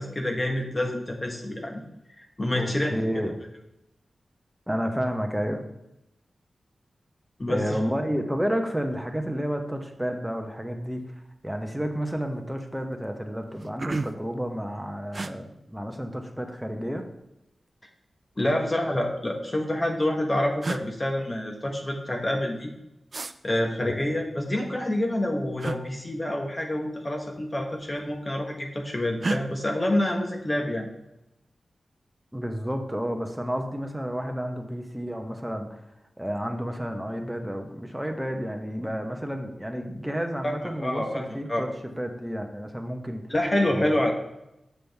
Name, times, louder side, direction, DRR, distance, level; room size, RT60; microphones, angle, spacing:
voice 1, 0.0-1.9 2.4-2.9 7.4-7.7 18.4-22.7 23.4-30.9 40.4-40.5 40.8-41.6 43.3-44.1, left 1 dB, 30° left, 2 dB, 1.0 m, -27 dB
voice 2, 2.5-3.4 4.7-5.6 7.5-11.1 11.4-17.1 23.8-23.9 32.3-35.8 36.2-41.7 42.0-43.2 43.7-44.0, equal, 5° right, 4 dB, 1.0 m, -31 dB
sound 1, 11.4-11.7 12.0-12.5 13.0-13.1 13.4-14.3 15.1-15.3 16.6-17.2 18.4-19.2 20.1-20.2 20.6-20.9 23.1-23.3 25.6-25.8 27.2-27.4 27.7-28.3 29.2-29.4, right 3 dB, 50° right, 0.4 m, -33 dB
7.0 x 6.1 x 3.5 m, 0.88 s
wide cardioid pair, 70°, 0 cm